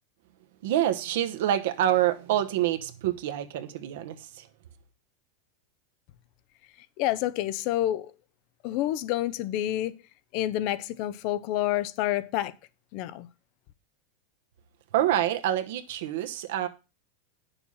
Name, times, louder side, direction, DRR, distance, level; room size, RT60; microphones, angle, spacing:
voice 1, 0.6-4.5 14.9-16.7, right 12 dB, 60° right, 1.1 m, -27 dB
voice 2, 7.0-8.1 8.6-10.0 10.3-12.5 12.9-13.3, left 13 dB, 40° left, 0.7 m, -28 dB
10.0 x 7.0 x 5.5 m
supercardioid pair, 175°, 0 cm